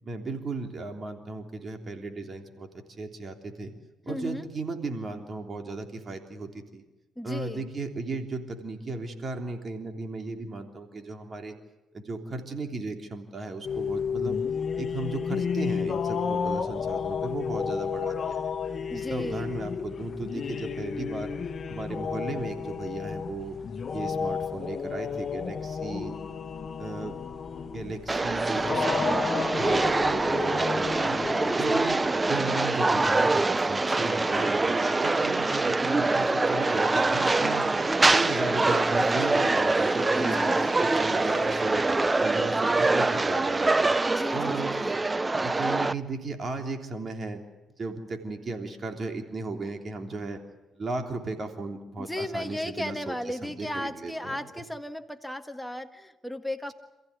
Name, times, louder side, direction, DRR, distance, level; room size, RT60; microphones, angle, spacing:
voice 1, 0.0-2.7 3.0-3.7 4.0-6.8 7.2-11.5 11.9-14.4 14.8-18.5 18.9-21.3 21.7-23.6 23.9-26.2 26.8-27.1 27.7-31.2 31.6-32.0 32.3-37.7 38.0-41.8 42.2-44.0 44.3-44.7 45.4-47.4 47.8-50.4 50.7-54.4, right 3 dB, 40° right, 4 dB, 3.3 m, -35 dB
voice 2, 4.1-4.5 7.1-7.7 18.9-19.5 31.5-31.9 39.2-40.8 44.0-44.9 52.0-56.7, left 1 dB, 5° left, 6 dB, 1.6 m, -35 dB
sound 1, 13.6-32.2, left 6 dB, 45° left, 1.4 m, -32 dB
sound 2, 28.1-45.9, right 3 dB, 20° right, 0.7 m, -24 dB
Water / Toilet flush, 36.5-42.7, right 4 dB, 75° right, 5.3 m, -45 dB
28.0 x 15.0 x 9.7 m, 1.1 s
cardioid pair, 90°, 0 cm